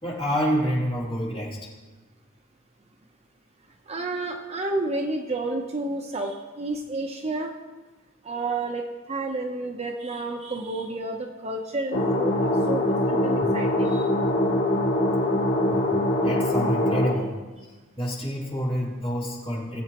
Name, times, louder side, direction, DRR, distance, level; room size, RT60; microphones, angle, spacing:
voice 1, 0.0-1.6 15.7-15.9 16.2-17.3 18.0-19.8, equal, 30° left, -5 dB, 3.1 m, -27 dB
voice 2, 3.9-7.5 8.2-14.0, right 2 dB, 30° right, 2 dB, 0.9 m, -30 dB
sound 1, 11.9-17.1, left 1 dB, 75° left, 2.4 m, -23 dB
21.0 x 7.9 x 3.0 m, 1.3 s
head